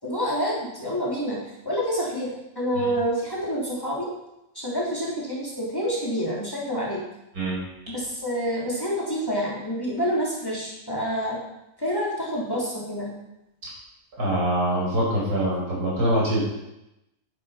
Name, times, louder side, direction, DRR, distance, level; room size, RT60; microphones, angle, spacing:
voice 1, 0.0-4.1 4.5-7.0 7.9-11.4 11.8-13.1, equal, 15° left, -5 dB, 3.5 m, -28 dB
voice 2, 14.2-16.4, right 1 dB, 80° right, -5 dB, 6.1 m, -24 dB
11.0 x 9.6 x 5.8 m, 0.90 s
omnidirectional pair, 1.6 m